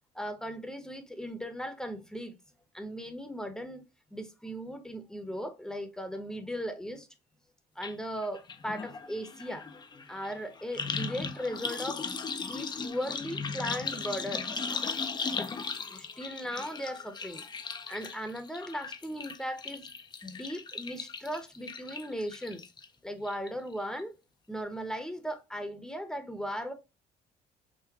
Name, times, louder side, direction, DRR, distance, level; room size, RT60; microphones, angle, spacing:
voice 1, 0.1-2.4 2.7-3.8 4.1-7.1 7.8-9.6 10.1-12.0 12.4-14.5 15.3-15.5 15.9-17.4 17.9-19.9 20.2-22.6 23.0-24.2 24.5-26.7, equal, 5° left, 0.8 m, -37 dB
sound 1, 7.8-7.9 8.2-22.9 23.2-23.7 24.0-24.1, left 5 dB, 25° left, 0.5 m, -37 dB
5.8 x 2.1 x 2.8 m
cardioid pair, 110°, 17 cm